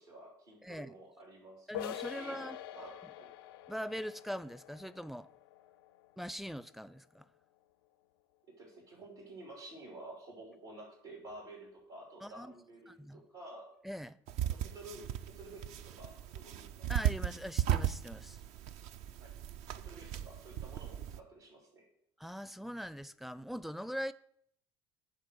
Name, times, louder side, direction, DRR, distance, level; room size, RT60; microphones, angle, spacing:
voice 1, 0.0-2.4 2.7-3.3 8.5-13.7 14.5-16.9 19.1-19.3 19.7-21.8, right 2 dB, 90° right, 3.2 m, -51 dB
voice 2, 0.6-1.0 1.7-2.6 3.7-5.3 6.2-7.3 12.2-12.5 12.9-13.2 13.8-14.2 16.9-18.4 22.2-24.1, equal, ahead, 0.4 m, -42 dB
sound 1, 1.7-7.2, left 12 dB, 80° left, 0.4 m, -46 dB
sound 2, 14.3-21.2, right 11 dB, 65° right, 0.5 m, -36 dB
9.9 x 3.7 x 6.4 m
hypercardioid pair, 60°, 12 cm